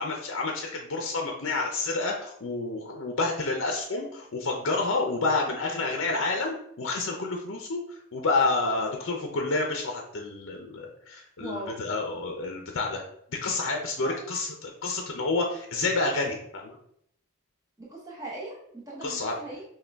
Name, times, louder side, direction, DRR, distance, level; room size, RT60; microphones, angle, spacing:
voice 1, 0.0-13.0 13.3-16.8 19.0-19.3, left 3 dB, 60° left, 2 dB, 0.6 m, -29 dB
voice 2, 11.4-11.7 14.0-14.1 17.8-19.6, right 2 dB, 15° right, -6 dB, 0.8 m, -39 dB
6.3 x 2.2 x 3.4 m, 0.71 s
head